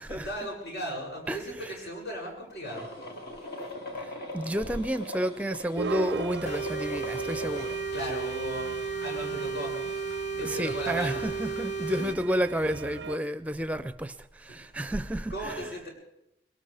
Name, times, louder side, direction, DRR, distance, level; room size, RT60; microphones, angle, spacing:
voice 1, 0.1-2.9 7.9-9.8 10.3-12.2 14.5-14.9 15.3-15.9, right 1 dB, 80° left, 7.1 m, -37 dB
voice 2, 1.3-1.8 4.0-7.8 10.4-15.7, right 1 dB, 10° right, 0.5 m, -31 dB
sound 1, 2.6-7.8, left 1 dB, 60° left, 2.2 m, -40 dB
sound 2, 5.8-13.2, right 4 dB, 90° right, 0.5 m, -39 dB
sound 3, 6.4-12.2, right 4 dB, 40° left, 0.5 m, -34 dB
22.0 x 18.5 x 3.4 m
head